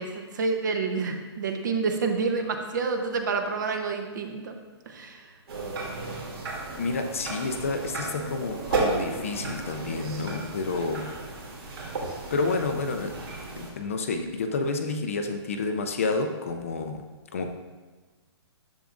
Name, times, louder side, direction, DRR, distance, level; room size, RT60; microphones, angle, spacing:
voice 1, 0.0-4.5 4.9-5.3, right 4 dB, 45° right, 5 dB, 0.8 m, -28 dB
sound 1, 5.5-13.7, right 2 dB, 65° right, 2.5 m, -33 dB
voice 2, 6.8-11.1 12.3-13.2 13.6-17.0 17.3-17.5, left 3 dB, 30° left, 6 dB, 0.4 m, -29 dB
10.5 x 7.2 x 2.5 m, 1.3 s
hypercardioid pair, 175°, 14 cm